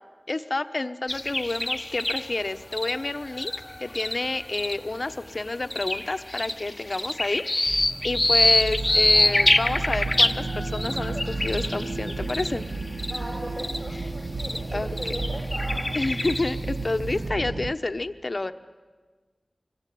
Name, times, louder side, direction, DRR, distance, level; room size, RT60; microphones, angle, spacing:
voice 1, 0.3-3.5 3.8-12.6 13.9-14.1 14.7-15.2 15.9-18.5, left 2 dB, 50° left, 9 dB, 1.0 m, -29 dB
sound 1, 1.1-4.9 5.4-13.3 13.6-13.8 14.4-14.6 15.0-16.7, left 1 dB, 30° left, 1.1 m, -25 dB
sound 2, 7.7-17.7, right 3 dB, 55° right, 0.8 m, -32 dB
voice 2, 13.1-15.9, equal, 25° right, -3 dB, 7.9 m, -37 dB
25.5 x 22.5 x 9.3 m, 1.4 s
wide cardioid pair, 60°, 0 cm